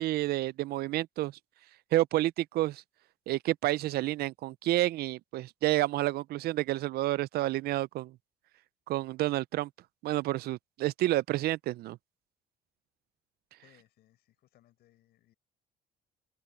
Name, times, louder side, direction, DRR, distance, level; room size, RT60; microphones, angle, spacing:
voice 1, 0.0-1.3 1.9-2.8 3.3-8.1 8.9-9.7 10.0-12.0, right 16 dB, 65° right, 0.5 m, -29 dB
voice 2, 13.6-15.3, left 14 dB, 75° left, 5.7 m, -65 dB
cardioid pair, 110°, 17 cm